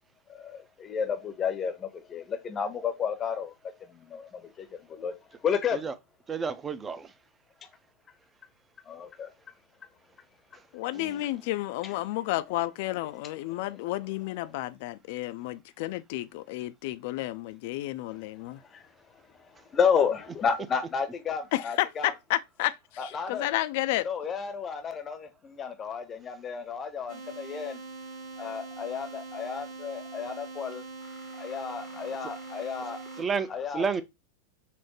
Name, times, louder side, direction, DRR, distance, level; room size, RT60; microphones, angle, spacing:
voice 1, 0.3-3.5 3.8-5.1 5.4-5.8 8.9-9.3 11.8-12.0 13.5-13.6 18.6-22.1 23.0-23.5 24.0-27.8 28.4-33.8, left 6 dB, 25° left, 0.7 m, -32 dB
voice 2, 6.3-7.1 10.9-11.1 33.2-33.5 33.7-34.0, right 5 dB, 20° right, 0.4 m, -30 dB
voice 3, 10.7-18.6 21.5-22.8 23.0-24.1, left 16 dB, 50° left, 0.3 m, -31 dB
sound 1, 27.1-33.2, right 3 dB, 60° right, 1.5 m, -42 dB
5.7 x 2.1 x 3.0 m
figure-of-eight pair, 90°, 0 cm